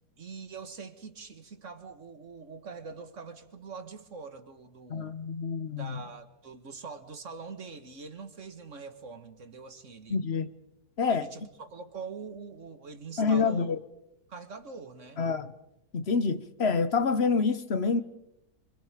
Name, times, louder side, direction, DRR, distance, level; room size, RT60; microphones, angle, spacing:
voice 1, 0.2-5.2 5.8-10.2 11.1-13.7 14.3-15.2, right 5 dB, 50° right, 2.0 m, -44 dB
voice 2, 4.9-6.0 10.1-10.5 11.0-11.3 13.2-13.8 15.2-15.5 15.9-18.0, left 5 dB, 45° left, 1.1 m, -27 dB
27.5 x 25.5 x 5.1 m
omnidirectional pair, 1.8 m